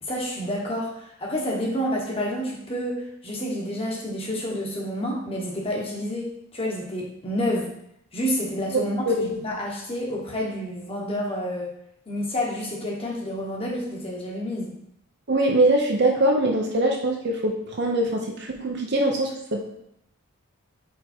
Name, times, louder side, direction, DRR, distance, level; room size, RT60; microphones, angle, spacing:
voice 1, 0.0-7.7 8.1-11.7 12.1-14.7, equal, 25° left, -2 dB, 1.2 m, -29 dB
voice 2, 15.3-19.6, right 1 dB, 55° right, 1 dB, 0.7 m, -22 dB
4.9 x 4.5 x 4.4 m, 0.76 s
head